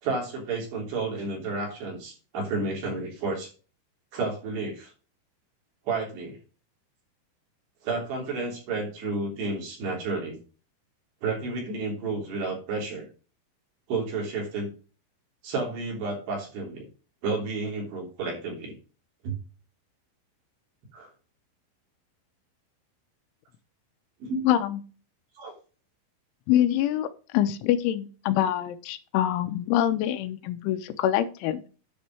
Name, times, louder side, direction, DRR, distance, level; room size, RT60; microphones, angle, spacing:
voice 1, 0.0-3.5 4.1-4.9 5.9-6.4 7.8-10.4 11.2-13.1 13.9-14.7 15.4-16.9 17.2-18.7 19.2-19.4 20.9-21.1 24.2-24.5 25.4-25.5, right 3 dB, 60° right, -1 dB, 5.2 m, -31 dB
voice 2, 24.4-24.8 26.5-27.1 27.3-31.8, left 12 dB, 85° left, 10 dB, 3.1 m, -25 dB
10.0 x 5.2 x 4.9 m, 0.35 s
omnidirectional pair, 5.6 m